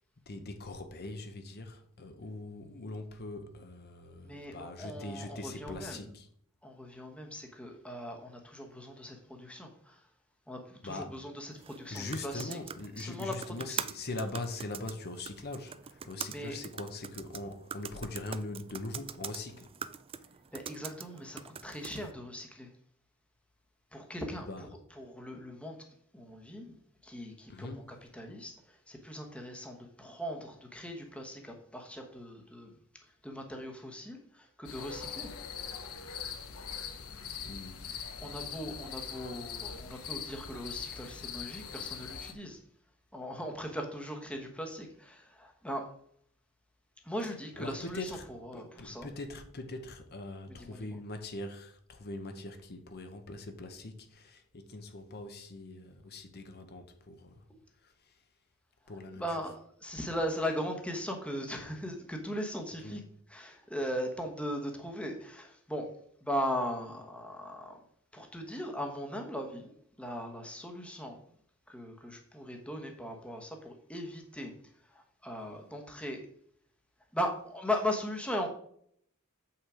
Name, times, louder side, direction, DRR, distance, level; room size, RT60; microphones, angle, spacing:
voice 1, 0.3-6.3 10.8-11.2 11.8-19.8 24.4-24.7 27.5-28.0 37.4-38.0 47.2-57.4 57.8-58.2 58.9-59.4 62.8-63.0, left 2 dB, 45° left, 0.9 m, -42 dB
voice 2, 4.2-6.1 6.6-10.0 10.5-12.6 13.0-13.3 13.7-13.8 16.3-16.6 20.5-22.7 23.9-24.5 25.0-25.8 26.1-26.7 27.0-27.7 28.1-32.7 33.2-35.3 38.2-42.6 43.1-45.8 47.0-48.0 48.4-49.1 50.7-50.9 59.2-63.0 63.3-65.9 66.2-67.8 68.1-71.2 71.7-74.5 74.9-76.2 77.1-78.5, equal, 5° left, 1.1 m, -38 dB
sound 1, 11.6-22.1, right 7 dB, 25° right, 0.4 m, -44 dB
sound 2, 34.6-42.3, left 7 dB, 70° left, 1.0 m, -42 dB
7.5 x 5.8 x 4.9 m
head